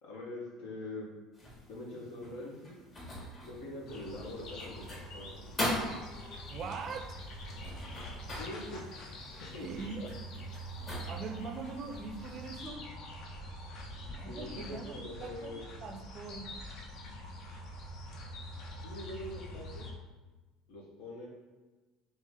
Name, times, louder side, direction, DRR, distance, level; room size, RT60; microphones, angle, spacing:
voice 1, 0.0-1.1 1.7-2.7 3.4-5.7 8.4-10.1 14.3-15.6 18.8-19.9 20.7-21.3, left 1 dB, 80° left, -3 dB, 1.1 m, -44 dB
sound 1, 1.3-12.6, left 1 dB, 30° left, 1.3 m, -42 dB
sound 2, 3.9-19.9, equal, 60° left, 0.6 m, -45 dB
voice 2, 6.5-7.2 9.6-10.0 11.1-12.9 14.2-15.5 15.8-16.5, right 4 dB, 45° right, 6 dB, 0.4 m, -42 dB
3.2 x 2.8 x 3.6 m, 1.2 s
supercardioid pair, 100°, 0 cm